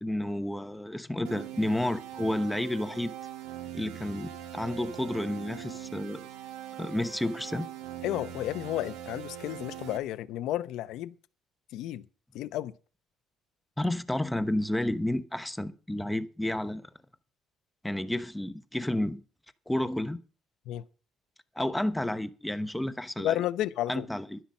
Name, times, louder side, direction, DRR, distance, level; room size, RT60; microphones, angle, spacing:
voice 1, 0.0-3.1 3.7-6.3 6.8-7.7 13.8-16.9 17.8-19.2 19.7-20.2 21.6-23.4 23.9-24.4, left 1 dB, 5° left, 0.9 m, -31 dB
sound 1, 1.2-10.0, right 11 dB, 90° right, 1.3 m, -42 dB
voice 2, 8.0-11.1 11.7-12.0 12.3-12.7 20.7-20.8 23.2-24.1, left 13 dB, 75° left, 0.7 m, -32 dB
12.0 x 10.0 x 5.4 m
cardioid pair, 140°, 0 cm